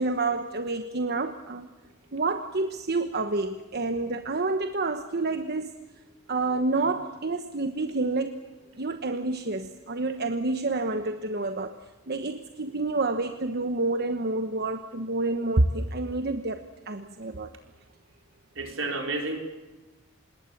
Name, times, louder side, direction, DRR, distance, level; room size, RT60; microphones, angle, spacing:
voice 1, 0.0-1.7 2.1-5.7 6.3-8.4 8.7-11.8 12.1-17.5, right 2 dB, 55° right, 8 dB, 1.1 m, -28 dB
voice 2, 18.5-19.4, right 2 dB, 75° right, 3 dB, 4.3 m, -31 dB
26.5 x 21.0 x 7.3 m, 1.2 s
head